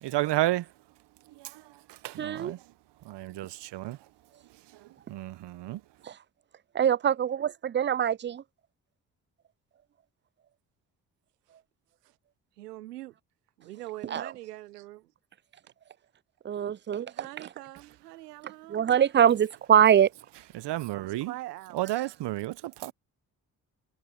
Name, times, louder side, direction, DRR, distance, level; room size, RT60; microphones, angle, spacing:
voice 1, 0.0-0.7 1.4-1.6 1.9-2.6 3.0-4.0 4.8-5.8 20.5-21.3 21.7-22.9, right 16 dB, 60° right, 1.4 m, -32 dB
voice 2, 2.2-2.5 6.0-6.1 6.8-8.4 14.1-14.3 16.4-17.3 18.7-20.1, right 9 dB, 25° right, 0.5 m, -23 dB
voice 3, 12.6-13.1 13.6-15.1 17.0-19.3 21.0-21.9, right 17 dB, 85° right, 1.4 m, -43 dB
figure-of-eight pair, 40°, 46 cm